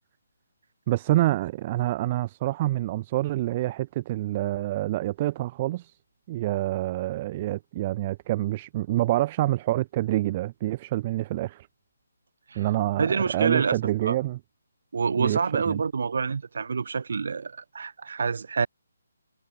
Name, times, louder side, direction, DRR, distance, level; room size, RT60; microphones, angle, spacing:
voice 1, 0.9-5.9 6.3-11.7 12.6-14.4 15.2-15.8, right 16 dB, 30° right, 0.4 m, -27 dB
voice 2, 13.0-14.2 14.9-18.7, right 5 dB, 65° right, 1.2 m, -27 dB
hypercardioid pair, 155°, 0 cm